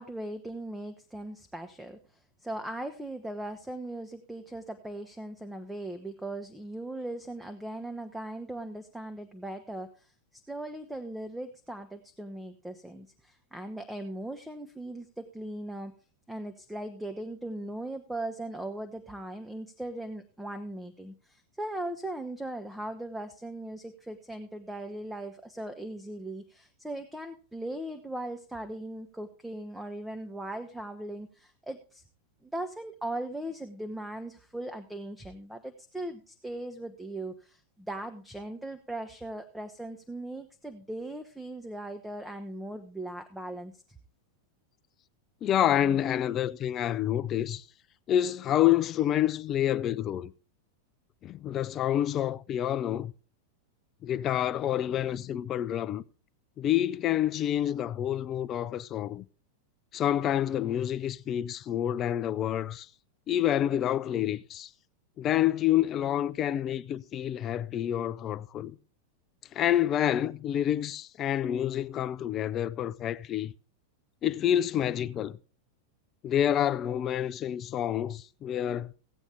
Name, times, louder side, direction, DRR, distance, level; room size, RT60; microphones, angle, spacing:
voice 1, 0.0-15.9 16.3-32.0 32.4-44.0, right 1 dB, 5° right, 0.8 m, -39 dB
voice 2, 45.4-47.6 48.1-50.3 51.2-53.1 54.0-56.0 56.6-59.2 59.9-62.9 63.3-64.7 65.2-68.8 69.5-73.5 74.2-75.4 76.2-78.9, left 11 dB, 30° left, 0.4 m, -28 dB
16.0 x 8.2 x 3.4 m
figure-of-eight pair, 90°, 0 cm